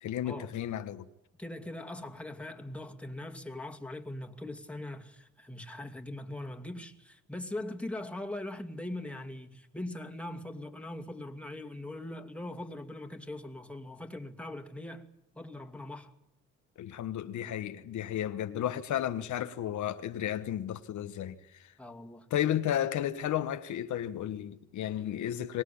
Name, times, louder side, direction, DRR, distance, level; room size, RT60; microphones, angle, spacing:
voice 1, 0.0-1.1 16.8-21.4 22.3-25.6, left 11 dB, 75° left, 1.3 m, -33 dB
voice 2, 1.4-15.1 15.3-16.1 21.8-22.3, left 1 dB, 5° left, 2.5 m, -41 dB
23.5 x 19.5 x 8.7 m
cardioid pair, 90°, 30 cm